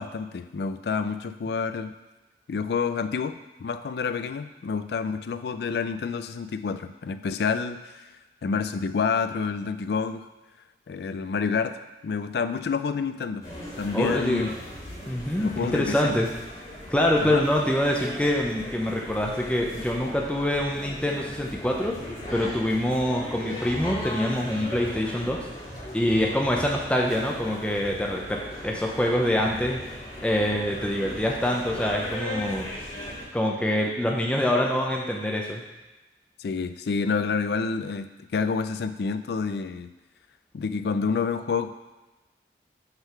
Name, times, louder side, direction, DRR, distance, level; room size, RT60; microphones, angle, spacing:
voice 1, 0.0-1.9 2.5-8.1 8.4-10.3 10.9-11.8 12.0-13.5 13.8-14.5 15.4-16.2 17.2-17.4 36.4-38.1 38.3-39.9 40.5-41.7, left 5 dB, 60° left, 10 dB, 0.3 m, -28 dB
sound 1, 13.4-33.3, left 1 dB, 35° left, 2.0 m, -38 dB
voice 2, 13.9-14.5 15.0-16.3 16.9-25.5 25.9-29.8 30.2-32.7 33.3-35.6, left 1 dB, 5° left, -1 dB, 0.5 m, -25 dB
5.6 x 3.8 x 5.7 m, 1.1 s
head